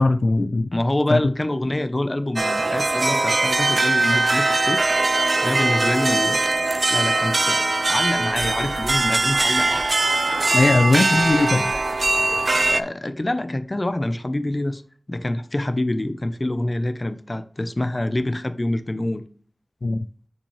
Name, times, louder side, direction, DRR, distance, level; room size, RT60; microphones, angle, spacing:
voice 1, 0.0-0.7 1.1-1.3 10.5-11.7 19.8-20.1, left 2 dB, 90° left, 0.3 m, -19 dB
voice 2, 0.7-4.9 5.4-6.4 6.9-7.6 7.9-9.8 12.5-14.8 15.1-19.2, left 1 dB, 45° left, 0.8 m, -26 dB
sound 1, 2.4-12.8, right 2 dB, 65° right, 0.4 m, -21 dB
6.9 x 5.4 x 3.3 m
wide cardioid pair, 45°, 0 cm